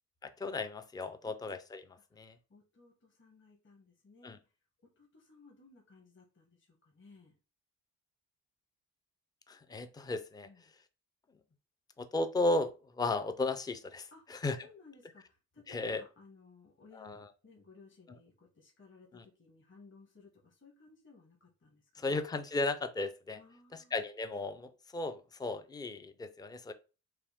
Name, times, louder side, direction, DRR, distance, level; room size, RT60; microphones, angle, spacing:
voice 1, 0.2-1.8 2.2-2.3 4.2-4.4 9.5-10.5 12.0-14.6 15.7-16.0 16.9-17.3 19.1-19.2 22.0-23.4 23.9-26.7, left 2 dB, 10° left, 10 dB, 0.4 m, -35 dB
voice 2, 2.5-4.4 5.0-7.4 10.4-10.7 14.1-14.2 14.6-22.2 23.3-24.0, left 4 dB, 35° left, -1 dB, 1.5 m, -59 dB
5.7 x 2.2 x 3.5 m, 0.33 s
cardioid pair, 105°, 34 cm